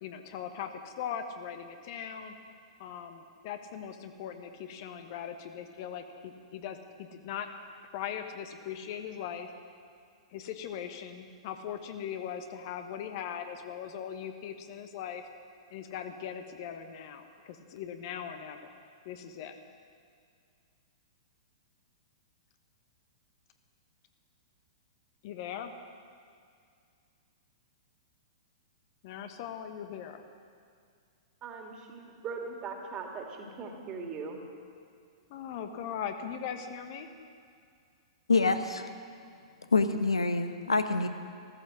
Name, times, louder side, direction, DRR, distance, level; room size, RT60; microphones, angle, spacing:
voice 1, 0.0-2.3 2.8-7.5 7.9-9.5 10.3-15.3 15.7-18.6 19.0-19.6 25.2-25.7 29.0-30.2 35.3-37.1, left 8 dB, 45° left, 7 dB, 1.1 m, -40 dB
voice 2, 31.4-34.4, right 4 dB, 30° right, 2 dB, 2.4 m, -40 dB
voice 3, 38.3-38.8 39.7-41.1, left 3 dB, 80° left, 8 dB, 0.9 m, -26 dB
14.5 x 14.0 x 6.3 m, 2.3 s
figure-of-eight pair, 105°, 3 cm